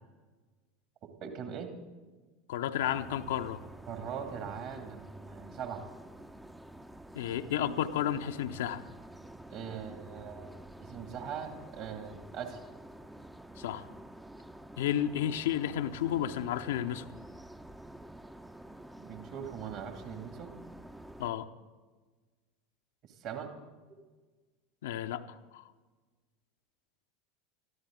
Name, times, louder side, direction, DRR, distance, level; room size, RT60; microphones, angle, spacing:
voice 1, 1.0-1.7 3.9-5.8 9.5-12.6 19.0-20.5 23.0-23.5, right 7 dB, 50° right, 5 dB, 2.3 m, -41 dB
voice 2, 2.5-3.6 7.1-8.8 13.6-13.9 14.8-17.1 21.2-21.5 24.8-25.6, left 10 dB, 65° left, 8 dB, 0.7 m, -32 dB
sound 1, 2.8-21.3, right 1 dB, 5° right, 0.6 m, -49 dB
22.0 x 14.0 x 3.8 m, 1.3 s
figure-of-eight pair, 75°, 0 cm